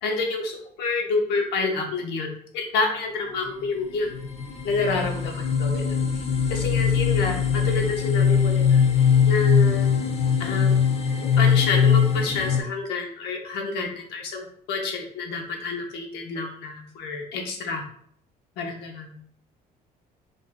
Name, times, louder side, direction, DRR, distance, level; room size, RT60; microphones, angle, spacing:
voice 1, 0.0-2.3 2.5-4.1 4.6-6.0 6.5-8.8 9.3-9.9 10.4-10.7 11.2-17.8 18.6-19.2, left 3 dB, 85° left, 1 dB, 0.7 m, -28 dB
sound 1, 3.6-3.7 4.1-12.6, left 7 dB, 35° left, 0.4 m, -21 dB
2.5 x 2.2 x 3.4 m, 0.62 s
cardioid pair, 110°, 17 cm